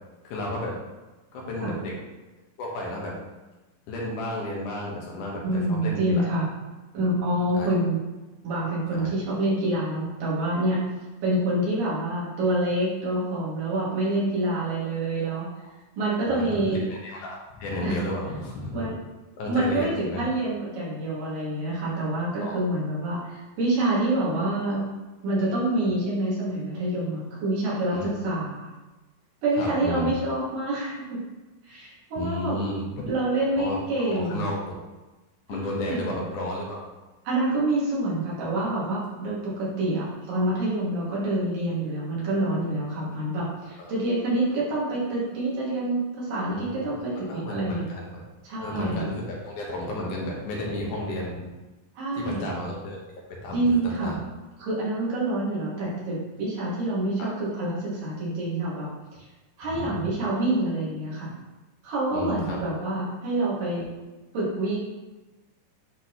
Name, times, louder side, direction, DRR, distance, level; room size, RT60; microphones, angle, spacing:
voice 1, 0.2-0.8 1.3-1.9 2.6-3.1 3.9-6.2 7.5-7.7 8.9-9.1 16.2-18.9 19.4-20.2 22.4-22.6 27.9-28.1 29.6-30.1 32.2-33.1 33.6-34.8 35.5-36.8 43.8-44.0 46.5-47.0 47.3-48.2 48.6-51.5 52.2-53.0 53.3-54.2 59.6-59.9 62.1-62.6, left 1 dB, 70° left, -2 dB, 2.5 m, -33 dB
voice 2, 5.4-6.5 6.9-8.0 8.4-10.8 11.2-15.5 16.0-16.8 17.8-18.0 18.7-18.9 19.5-24.8 25.2-28.7 29.4-31.2 31.6-32.6 33.0-34.5 35.5-36.1 37.3-47.8 48.4-49.1 52.0-52.5 53.5-54.2 54.6-58.9 59.6-61.3 61.8-63.9 64.3-64.8, right 1 dB, 80° right, -7 dB, 3.7 m, -27 dB
9.7 x 4.0 x 2.9 m, 1.1 s
omnidirectional pair, 3.9 m